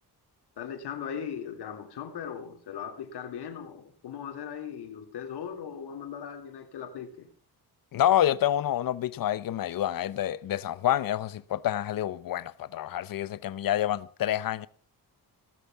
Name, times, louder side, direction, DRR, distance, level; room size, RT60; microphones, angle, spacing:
voice 1, 0.6-7.3, left 8 dB, 90° left, 3.0 m, -38 dB
voice 2, 7.9-14.7, left 12 dB, 60° left, 0.8 m, -28 dB
17.5 x 13.0 x 5.9 m
wide cardioid pair, 165°, 39 cm